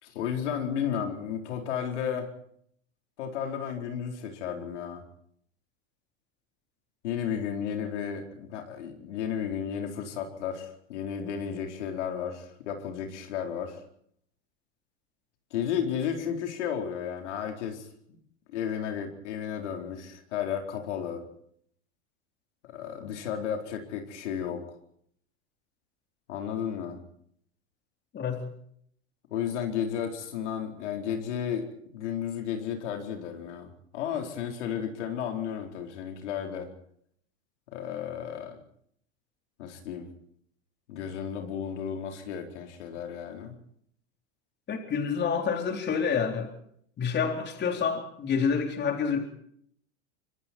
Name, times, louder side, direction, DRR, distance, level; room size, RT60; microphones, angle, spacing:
voice 1, 0.0-2.3 3.2-5.0 7.0-13.8 15.5-17.9 18.5-21.2 22.7-24.7 26.3-27.0 29.3-31.7 31.9-36.7 37.7-38.6 39.6-40.1 40.9-43.5, left 8 dB, 75° left, 4 dB, 4.4 m, -33 dB
voice 2, 44.7-46.5 47.0-49.3, left 6 dB, 30° left, 4 dB, 4.0 m, -28 dB
25.5 x 23.5 x 4.6 m, 0.66 s
hypercardioid pair, 115°, 35 cm